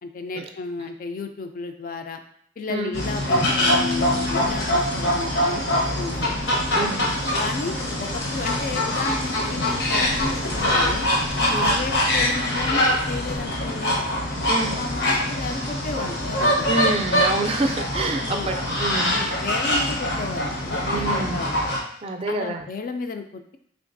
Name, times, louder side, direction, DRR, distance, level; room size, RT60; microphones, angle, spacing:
voice 1, 0.0-2.2 2.6-6.3 7.4-11.1 11.4-14.0 14.8-16.7 18.2-18.5 19.0-21.5 22.3-23.6, left 3 dB, 50° left, 6 dB, 0.3 m, -33 dB
sound 1, 2.9-21.8, left 1 dB, 80° left, 0.9 m, -23 dB
voice 2, 16.7-19.2 20.9-21.4 22.0-22.7, right 2 dB, 35° right, 5 dB, 0.4 m, -27 dB
3.8 x 3.4 x 2.6 m, 0.67 s
head